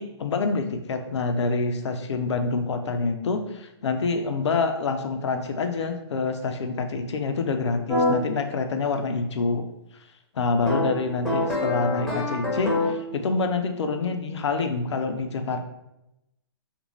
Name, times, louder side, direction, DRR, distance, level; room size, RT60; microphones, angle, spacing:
voice 1, 0.0-9.6 10.3-15.7, left 4 dB, 75° left, 6 dB, 0.4 m, -27 dB
sound 1, 7.9-8.1 10.7-13.1, left 2 dB, 5° left, 0.6 m, -25 dB
2.5 x 2.1 x 3.0 m, 0.87 s
hypercardioid pair, 130°, 15 cm